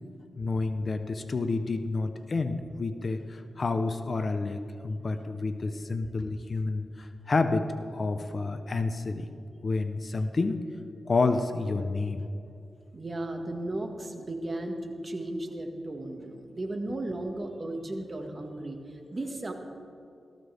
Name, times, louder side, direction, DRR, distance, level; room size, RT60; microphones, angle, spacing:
voice 1, 0.4-9.3 9.6-10.6 11.1-12.2, left 3 dB, 50° left, 8 dB, 0.9 m, -29 dB
voice 2, 12.9-19.5, right 1 dB, 35° right, 3 dB, 1.9 m, -35 dB
17.5 x 14.5 x 3.6 m, 2.6 s
cardioid pair, 65°, 0 cm